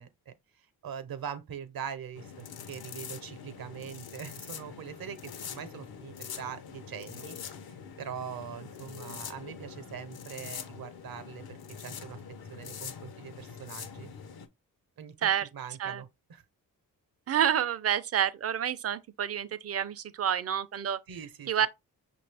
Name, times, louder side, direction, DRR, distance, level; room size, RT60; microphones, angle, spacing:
voice 1, 0.0-7.4 7.7-12.2 12.5-14.1 15.0-16.4 21.1-21.7, right 8 dB, 70° right, 0.9 m, -42 dB
sound 1, 2.1-14.5, left 7 dB, 75° left, 0.8 m, -44 dB
voice 2, 17.3-21.0 21.5-21.7, right 9 dB, 40° right, 0.5 m, -28 dB
5.8 x 2.6 x 3.3 m
cardioid pair, 90°, 37 cm